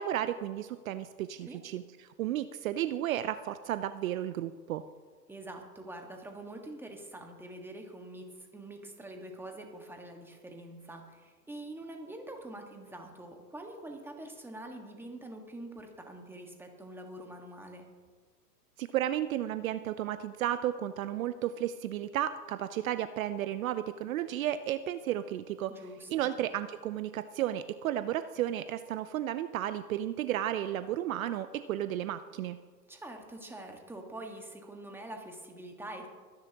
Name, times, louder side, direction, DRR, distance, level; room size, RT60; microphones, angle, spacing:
voice 1, 0.0-1.8 2.2-4.8 18.8-25.7 26.1-32.6, right 12 dB, 55° right, 13 dB, 0.6 m, -33 dB
voice 2, 5.3-17.9 25.7-26.3 32.9-36.1, right 1 dB, 5° right, 3 dB, 1.6 m, -45 dB
23.0 x 10.5 x 3.0 m, 1.5 s
hypercardioid pair, 115°, 49 cm